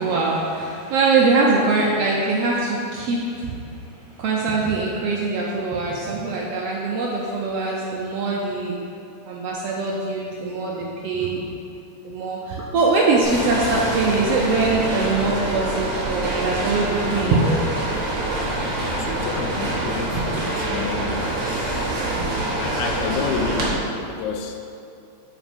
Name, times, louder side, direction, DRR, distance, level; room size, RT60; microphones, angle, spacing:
voice 1, 0.0-3.6 4.2-8.8 9.3-11.4 12.0-17.4 20.1-20.3 22.2-22.3, right 3 dB, 75° right, -3 dB, 1.4 m, -22 dB
sound 1, 13.2-23.7, right 1 dB, 55° right, 1.7 m, -26 dB
voice 2, 17.3-17.6 19.0-21.9 22.6-24.6, left 5 dB, 85° left, 3 dB, 2.1 m, -30 dB
6.2 x 5.0 x 5.2 m, 2.5 s
omnidirectional pair, 3.4 m